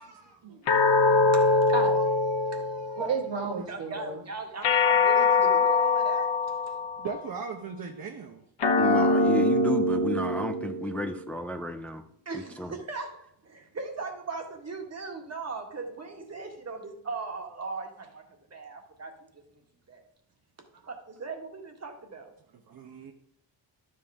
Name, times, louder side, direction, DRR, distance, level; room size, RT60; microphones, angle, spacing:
voice 1, 0.0-1.3 1.7-4.2, right 4 dB, 75° right, 2 dB, 2.0 m, -35 dB
sound 1, 0.7-3.3 4.6-7.2 8.6-11.2, left 3 dB, 65° left, 1.4 m, -23 dB
voice 2, 1.3-1.7 2.5-2.6 3.7-6.7 12.3-18.2 18.5-19.4 19.9-20.0 20.9-22.3, right 4 dB, 35° right, 3 dB, 1.8 m, -38 dB
voice 3, 7.0-8.4 22.7-23.1, right 5 dB, 50° right, 3 dB, 1.1 m, -38 dB
voice 4, 8.8-12.0 12.6-12.7, left 1 dB, 5° left, 7 dB, 0.5 m, -32 dB
12.0 x 7.6 x 3.6 m, 0.69 s
wide cardioid pair, 130°, 43 cm